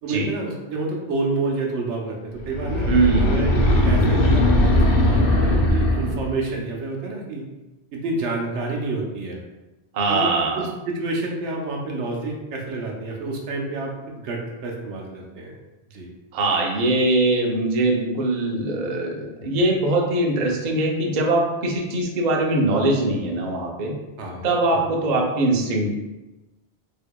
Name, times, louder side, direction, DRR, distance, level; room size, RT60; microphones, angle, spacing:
voice 1, 0.0-2.9 3.2-7.4 7.9-9.4 10.1-15.6 15.9-16.1 19.6-19.7 24.2-24.5, right 3 dB, 80° right, 0 dB, 1.0 m, -29 dB
sound 1, 2.4-6.4, left 1 dB, 60° left, 0.7 m, -19 dB
voice 2, 2.9-3.3 9.9-10.7 16.3-23.9 24.4-25.9, right 2 dB, 50° right, 0 dB, 0.6 m, -22 dB
4.5 x 2.8 x 2.2 m, 1.1 s
omnidirectional pair, 1.2 m